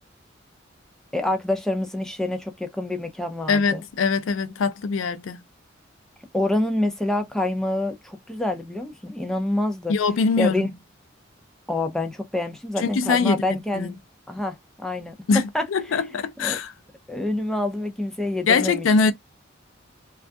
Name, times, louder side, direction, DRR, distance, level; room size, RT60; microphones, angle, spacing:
voice 1, 1.1-3.8 6.3-9.9 10.4-10.7 11.7-14.0 14.3-15.1 15.5-15.6 16.4-16.6 17.1-18.8, left 1 dB, 5° left, 0.4 m, -27 dB
voice 2, 3.5-5.4 9.9-10.7 12.8-13.9 15.3-15.4 15.7-16.7 18.5-19.1, left 4 dB, 85° left, 0.4 m, -22 dB
2.3 x 2.2 x 2.5 m
head